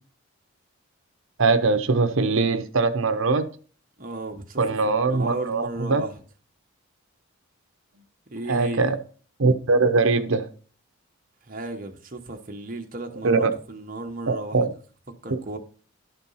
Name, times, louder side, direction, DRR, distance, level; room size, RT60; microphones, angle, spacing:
voice 1, 1.4-3.5 4.6-6.0 8.5-9.0 9.4-10.5 13.2-13.5 14.3-14.7 15.3-15.4, right 3 dB, 65° right, 0.8 m, -21 dB
voice 2, 4.0-6.1 8.3-8.9 11.5-14.7 15.2-15.6, right 2 dB, 40° right, 1.1 m, -34 dB
11.5 x 4.4 x 5.5 m
head